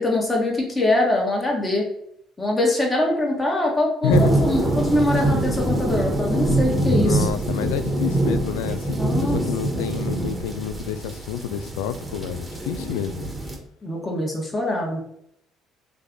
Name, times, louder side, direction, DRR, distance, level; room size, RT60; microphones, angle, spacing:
voice 1, 0.0-1.8 2.4-7.3 9.0-9.4 9.7-10.0 13.8-15.0, left 1 dB, 25° left, -1 dB, 1.5 m, -23 dB
sound 1, 4.1-13.6, right 1 dB, 5° right, 1.3 m, -24 dB
voice 2, 6.9-13.3, left 9 dB, 90° left, 11 dB, 0.3 m, -29 dB
3.3 x 3.3 x 3.8 m, 0.72 s
supercardioid pair, 70°, 0 cm